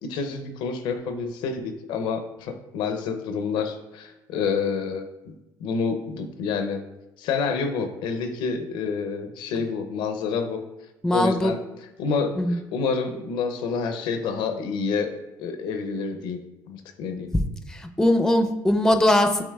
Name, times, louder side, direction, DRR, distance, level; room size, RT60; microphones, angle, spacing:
voice 1, 0.0-5.3 5.6-6.8 7.2-10.6 11.1-11.6 12.0-15.1 15.4-16.4 16.7-17.3, left 5 dB, 75° left, 6 dB, 0.5 m, -28 dB
voice 2, 11.0-11.5 12.4-12.6 17.7-19.4, left 1 dB, 5° left, 7 dB, 0.4 m, -20 dB
7.1 x 2.9 x 2.3 m, 0.98 s
supercardioid pair, 80°, 8 cm